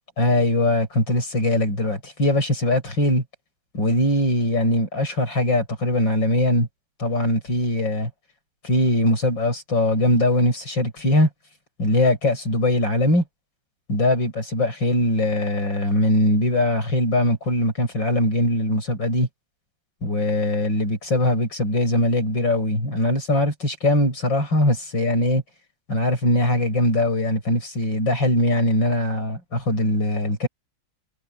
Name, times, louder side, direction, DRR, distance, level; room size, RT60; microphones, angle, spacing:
voice 1, 0.2-3.2 3.7-6.7 7.0-8.1 8.6-11.3 11.8-13.2 13.9-19.3 20.0-25.4 25.9-30.5, left 1 dB, 80° left, 7.6 m, -21 dB
omnidirectional pair, 2.0 m